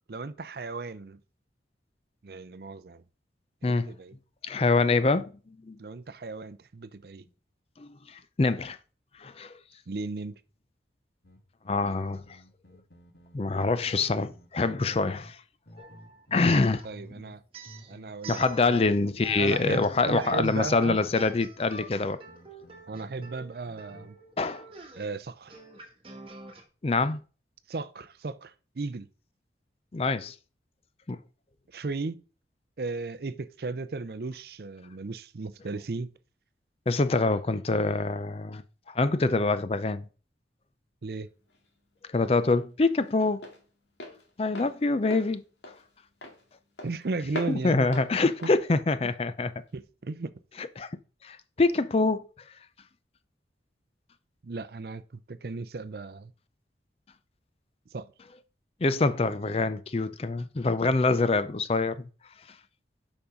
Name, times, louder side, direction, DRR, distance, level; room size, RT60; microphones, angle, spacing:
voice 1, 0.1-1.2 2.2-3.0 3.6-4.1 5.8-7.2 9.9-10.3 16.8-17.4 17.9-18.4 18.7-18.8 19.4-21.0 22.9-24.2 25.0-25.5 27.7-29.1 31.7-32.2 32.8-36.1 41.0-41.3 46.8-47.9 48.4-48.5 49.7-50.3 54.4-56.3 57.9-58.1, right 3 dB, 60° right, 0.5 m, -35 dB
voice 2, 4.4-5.8 7.8-8.8 9.2-9.5 11.7-12.2 13.3-15.4 15.8-15.9 16.3-16.8 18.3-22.2 24.4-24.7 26.8-27.2 29.9-30.3 31.1-31.2 36.9-38.6 38.9-40.0 42.1-43.4 44.4-45.4 47.5-49.5 50.6-50.9 51.2-52.2 58.8-62.1, left 3 dB, 35° left, 0.4 m, -25 dB
sound 1, 11.2-15.3 15.7-17.4 17.6-23.3 23.7-24.1, equal, 65° left, 1.9 m, -52 dB
sound 2, 15.8-17.1 17.5-18.9 19.2-26.6, right 3 dB, 30° right, 1.3 m, -47 dB
Walk footsteps, 41.1-49.8, left 1 dB, 85° left, 2.1 m, -43 dB
7.0 x 5.4 x 5.0 m
head